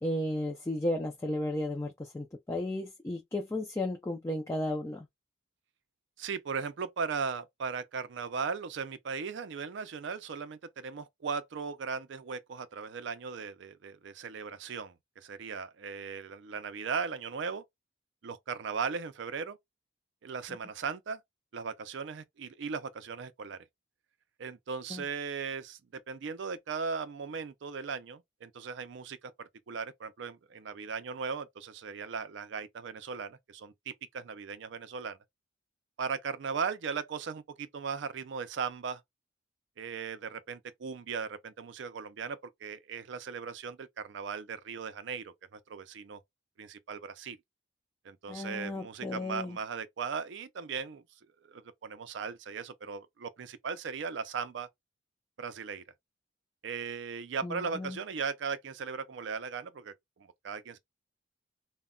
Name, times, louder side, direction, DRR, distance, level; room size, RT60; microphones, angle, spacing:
voice 1, 0.0-5.1 24.9-25.0 48.3-49.6 57.4-58.0, left 1 dB, 15° left, 0.3 m, -34 dB
voice 2, 6.2-17.6 18.2-19.6 20.2-21.2 21.5-23.6 24.4-35.2 36.0-39.0 39.8-46.2 46.6-47.4 48.0-51.0 51.4-54.7 55.4-55.8 56.6-60.8, right 5 dB, 65° right, 0.4 m, -38 dB
2.1 x 2.1 x 3.6 m
head